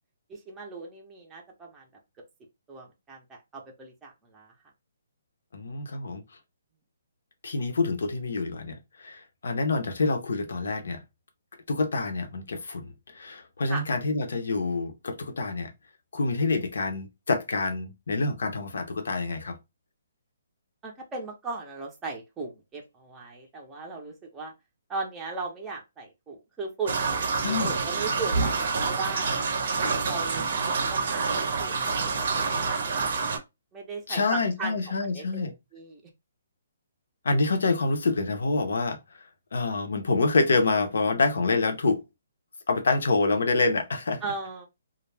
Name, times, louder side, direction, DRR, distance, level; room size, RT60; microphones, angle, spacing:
voice 1, 0.3-1.8 2.7-4.5 13.7-13.8 20.8-24.5 24.9-27.0 27.4-28.6 28.9-29.4 30.0-32.1 32.4-33.0 33.7-35.2 35.7-36.0 44.2-44.7, right 4 dB, 10° right, 0.5 m, -37 dB
voice 2, 5.5-6.2 7.4-11.0 11.7-15.7 16.1-19.6 27.4-27.7 34.1-35.5 37.2-39.0 39.5-42.0 42.7-44.2, left 3 dB, 75° left, 0.6 m, -27 dB
sound 1, 26.9-33.4, right 4 dB, 50° right, 0.6 m, -27 dB
2.3 x 2.0 x 3.2 m
hypercardioid pair, 165°, 0 cm